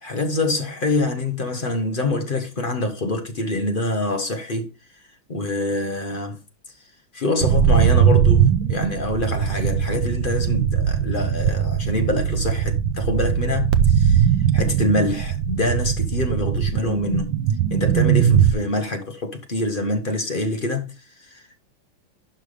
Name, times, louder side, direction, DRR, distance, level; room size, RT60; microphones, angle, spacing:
voice 1, 0.0-4.7 5.3-6.4 7.1-14.3 14.5-17.4 17.7-21.6, left 2 dB, 35° left, 0.9 m, -25 dB
sound 1, 7.4-18.5, right 9 dB, 75° right, 1.4 m, -20 dB
11.5 x 5.5 x 3.3 m
omnidirectional pair, 2.2 m